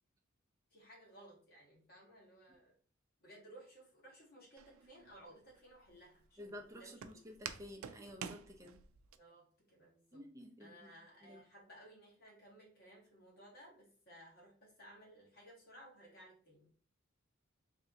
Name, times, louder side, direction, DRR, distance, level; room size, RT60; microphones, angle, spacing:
voice 1, 0.7-2.7 3.2-7.2 9.2-10.2 10.6-16.7, right 1 dB, 50° left, -5 dB, 1.6 m, -59 dB
Walk footsteps, 4.6-9.2, right 7 dB, 85° right, 0.4 m, -49 dB
voice 2, 6.4-8.8 10.1-10.9 11.2-11.4, left 1 dB, 15° right, 1 dB, 0.6 m, -52 dB
3.3 x 2.8 x 3.6 m, 0.43 s
head